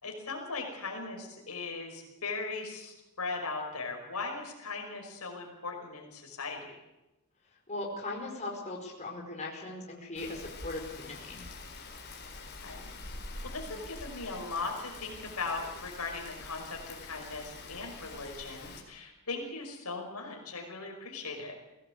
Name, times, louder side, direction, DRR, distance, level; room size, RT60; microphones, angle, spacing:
voice 1, 0.0-6.7 12.5-12.9 13.4-21.5, left 3 dB, 80° left, 2 dB, 5.5 m, -39 dB
voice 2, 7.7-11.4, left 2 dB, 30° left, -1 dB, 5.0 m, -39 dB
Rain, 10.2-18.8, left 3 dB, 50° left, 4.8 m, -45 dB
21.0 x 17.5 x 8.3 m, 1.0 s
head